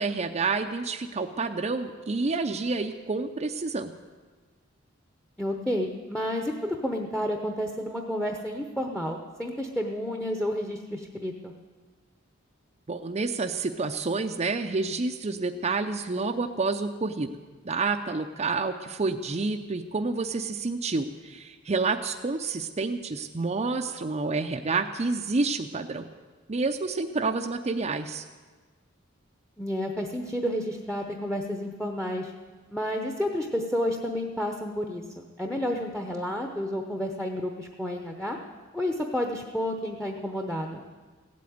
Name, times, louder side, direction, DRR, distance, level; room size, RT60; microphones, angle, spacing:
voice 1, 0.0-3.9 12.9-17.3 17.6-26.0 26.5-28.2, right 3 dB, 35° right, 4 dB, 0.6 m, -29 dB
voice 2, 5.4-11.5 29.6-32.3 32.7-38.4 38.7-40.8, equal, 5° left, 4 dB, 0.9 m, -30 dB
16.0 x 8.5 x 9.4 m, 1.4 s
head